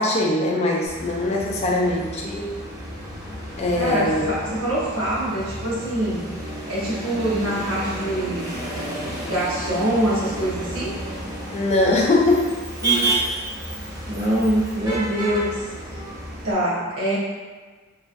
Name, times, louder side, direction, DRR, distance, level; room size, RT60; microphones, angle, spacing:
voice 1, 0.0-2.5 3.6-4.4 11.5-12.6, left 2 dB, 30° left, -2 dB, 0.4 m, -21 dB
Motor vehicle (road), 0.9-16.5, right 1 dB, 20° right, 0.6 m, -31 dB
voice 2, 3.8-6.2 6.7-8.6 9.2-10.9 12.8-13.2 14.1-15.5 15.9-16.0 16.4-17.2, right 1 dB, 85° right, -8 dB, 1.0 m, -24 dB
3.0 x 2.4 x 2.5 m, 1.4 s
head